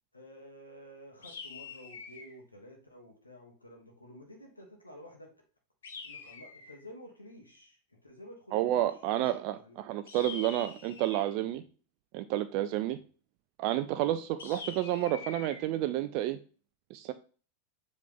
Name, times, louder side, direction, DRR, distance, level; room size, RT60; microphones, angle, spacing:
voice 1, 0.1-5.3 6.0-9.8 10.4-10.7 11.4-11.5 12.8-13.0 14.0-14.1, equal, 80° left, 1 dB, 1.3 m, -52 dB
sound 1, 1.2-2.4 5.8-6.9 10.1-11.3 14.4-15.6, left 5 dB, 65° left, 1.1 m, -45 dB
voice 2, 8.5-11.6 12.1-13.0 13.6-16.4 16.9-17.1, right 13 dB, 45° right, 11 dB, 0.3 m, -30 dB
7.3 x 3.6 x 3.6 m, 0.39 s
figure-of-eight pair, 90°, 0 cm